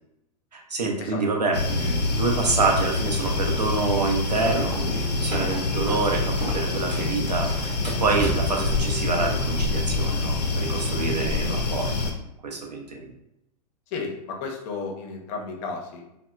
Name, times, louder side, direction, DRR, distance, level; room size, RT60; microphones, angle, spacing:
voice 1, 0.5-12.1 12.4-13.1, right 3 dB, 85° right, 0 dB, 0.6 m, -27 dB
sound 1, 1.5-12.1, left 3 dB, 85° left, 0.5 m, -26 dB
sound 2, 4.3-7.1 7.4-8.7, right 3 dB, 20° right, 0.7 m, -35 dB
voice 2, 13.9-16.1, left 4 dB, 40° left, 1 dB, 0.5 m, -33 dB
2.8 x 2.0 x 2.2 m, 0.84 s
figure-of-eight pair, 100°, 20 cm